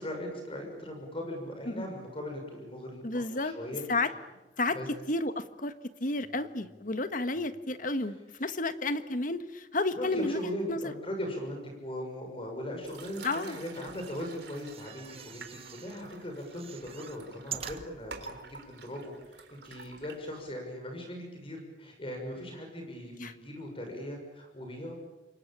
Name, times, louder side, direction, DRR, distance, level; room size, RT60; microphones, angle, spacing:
voice 1, 0.0-3.1 3.4-3.8 4.7-4.9 6.2-6.3 9.9-15.5 15.7-25.0, equal, 30° left, 3 dB, 6.3 m, -39 dB
voice 2, 3.0-3.5 3.9-4.1 4.6-4.8 5.1-5.7 6.0-10.9 13.2-13.6 23.2-23.3, left 2 dB, 50° left, 11 dB, 1.5 m, -31 dB
sound 1, 12.8-20.6, right 4 dB, 70° right, 3.7 m, -49 dB
sound 2, 13.9-16.0 16.4-18.3 18.9-19.0 19.2-19.3, right 8 dB, 35° right, 1.6 m, -45 dB
28.0 x 23.5 x 8.9 m, 1.0 s
head